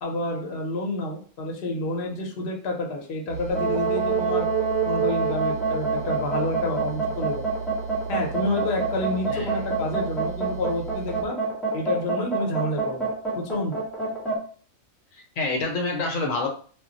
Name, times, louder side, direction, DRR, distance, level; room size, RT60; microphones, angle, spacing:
voice 1, 0.0-4.5 4.9-7.4 8.1-11.4 11.7-13.1 13.3-13.8, left 1 dB, 50° left, 0 dB, 0.8 m, -29 dB
sound 1, 3.3-11.2, right 6 dB, 60° right, 0.5 m, -36 dB
sound 2, 3.5-14.4, right 4 dB, ahead, 1.0 m, -26 dB
voice 2, 15.1-16.5, left 3 dB, 75° left, 2 dB, 1.0 m, -27 dB
2.2 x 2.1 x 3.7 m, 0.43 s
omnidirectional pair, 1.4 m